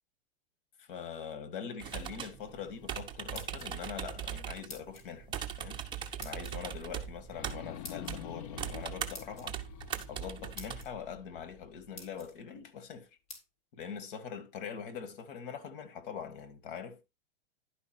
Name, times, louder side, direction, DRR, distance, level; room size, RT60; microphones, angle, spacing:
voice 1, 0.8-5.3 5.6-5.8 6.2-9.6 10.1-13.1 13.7-17.0, left 7 dB, 60° left, 2.0 m, -43 dB
sound 1, 1.8-10.8, right 9 dB, 15° right, 1.0 m, -40 dB
sound 2, 2.3-5.3 5.7-5.8 7.2-12.3, left 11 dB, 40° left, 0.6 m, -49 dB
sound 3, 3.2-4.0 4.7-5.1 6.2-6.5 7.8-8.2 9.1-9.5 10.2-10.3 10.6-10.9 11.5-11.6 11.9-12.3 13.3-13.4, left 2 dB, 25° left, 2.9 m, -47 dB
11.0 x 5.3 x 4.4 m
supercardioid pair, 155°, 29 cm